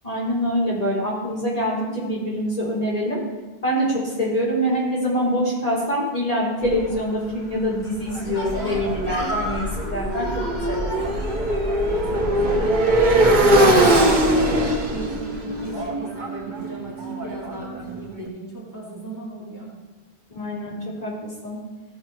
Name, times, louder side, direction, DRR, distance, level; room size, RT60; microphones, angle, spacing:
voice 1, 0.0-3.2 3.6-11.1 20.3-20.8 21.0-21.6, equal, 35° left, -7 dB, 3.6 m, -25 dB
sound 1, 6.6-15.9, equal, 75° left, 2.9 m, -31 dB
Motorcycle, 8.1-18.0, right 1 dB, 50° right, 1.2 m, -21 dB
voice 2, 11.7-13.4 13.8-19.7, right 2 dB, 20° right, -7 dB, 2.7 m, -36 dB
15.5 x 5.4 x 4.7 m, 1.2 s
omnidirectional pair, 1.0 m